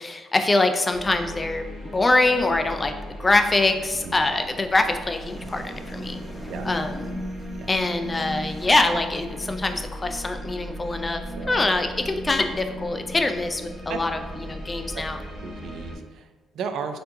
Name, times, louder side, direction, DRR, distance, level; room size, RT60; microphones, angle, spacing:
voice 1, 0.0-6.2 6.7-7.2 7.7-11.2 11.5-14.1 14.5-15.2, left 2 dB, 25° left, 6 dB, 0.3 m, -24 dB
sound 1, 0.9-15.9, equal, 35° right, 1.2 m, -36 dB
sound 2, 4.6-9.9, equal, 5° left, 0.7 m, -47 dB
voice 2, 15.4-17.0, right 6 dB, 75° right, 7 dB, 0.3 m, -35 dB
4.3 x 2.6 x 2.6 m, 1.2 s
cardioid pair, 90°, 0 cm